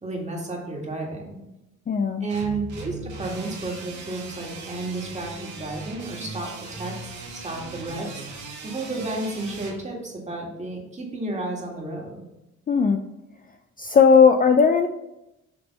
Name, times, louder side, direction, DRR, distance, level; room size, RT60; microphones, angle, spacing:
voice 1, 0.0-1.4 2.2-6.9 7.3-8.3 8.6-12.2, right 2 dB, 25° right, -1 dB, 2.0 m, -32 dB
voice 2, 1.9-2.3 12.7-13.0 13.8-14.9, left 6 dB, 30° left, 6 dB, 0.4 m, -17 dB
sound 1, 2.3-9.8, right 3 dB, 70° right, 1.8 m, -38 dB
6.9 x 3.3 x 5.4 m, 0.92 s
cardioid pair, 90°, 30 cm